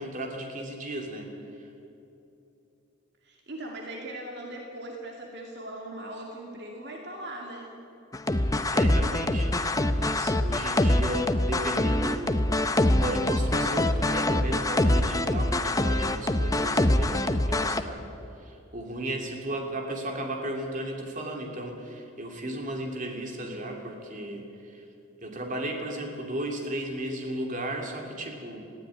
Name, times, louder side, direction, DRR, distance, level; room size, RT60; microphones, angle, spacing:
voice 1, 0.0-1.7 8.4-18.0 18.4-24.9 25.2-28.6, right 1 dB, 40° right, 2 dB, 2.9 m, -35 dB
voice 2, 3.2-7.7, right 1 dB, 55° right, 0 dB, 2.5 m, -39 dB
sound 1, 8.1-17.8, left 1 dB, 15° left, 0.7 m, -24 dB
19.5 x 15.5 x 9.9 m, 2.8 s
head